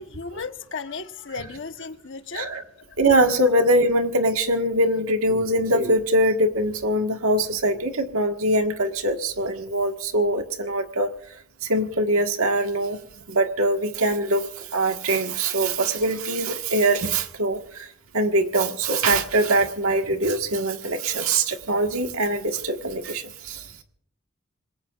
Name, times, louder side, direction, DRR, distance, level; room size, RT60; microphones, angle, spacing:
voice 1, 0.0-2.5 2.9-3.0, left 4 dB, 60° left, 8 dB, 1.1 m, -35 dB
voice 2, 2.3-2.6 3.0-13.0 13.3-17.9 18.1-23.8, right 1 dB, 80° right, 4 dB, 1.7 m, -23 dB
26.5 x 21.0 x 2.5 m, 0.62 s
head